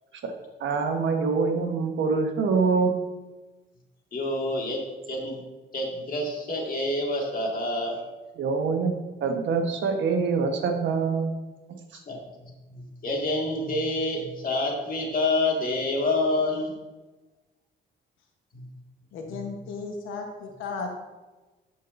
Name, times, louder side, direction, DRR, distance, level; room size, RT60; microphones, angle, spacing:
voice 1, 0.6-2.9 8.4-8.9 9.2-11.3, right 4 dB, 70° right, 4 dB, 1.3 m, -24 dB
voice 2, 4.1-4.8 5.1-5.4 5.7-8.0 11.9-16.7 18.5-18.7 19.3-19.4, left 2 dB, 45° left, -1 dB, 2.1 m, -28 dB
voice 3, 19.1-20.9, left 4 dB, 90° left, 3 dB, 1.2 m, -35 dB
13.0 x 5.5 x 2.7 m, 1.2 s
cardioid pair, 90°, 20 cm